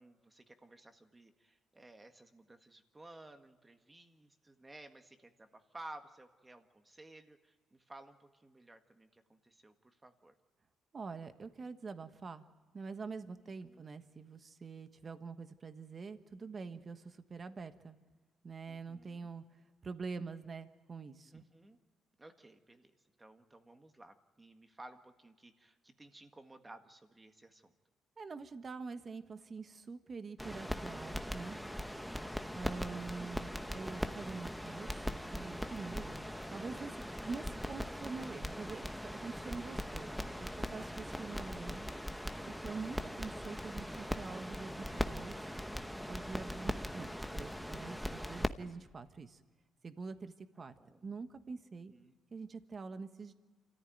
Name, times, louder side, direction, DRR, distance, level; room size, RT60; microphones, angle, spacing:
voice 1, 0.0-10.3 13.6-13.8 18.7-19.3 21.3-21.8 22.2-22.9 23.2-27.7 50.6-51.1 51.9-52.2, right 2 dB, 20° right, 7 dB, 1.8 m, -56 dB
voice 2, 10.9-12.4 12.7-18.0 18.4-19.4 19.8-21.4 28.2-31.6 32.5-41.9 42.5-45.4 46.1-49.4 49.8-50.7 51.0-51.9 52.3-53.3, right 4 dB, 40° right, 10 dB, 1.3 m, -45 dB
sound 1, 30.4-48.5, equal, ahead, 0.9 m, -40 dB
27.0 x 14.5 x 9.2 m, 1.4 s
cardioid pair, 90°, 0 cm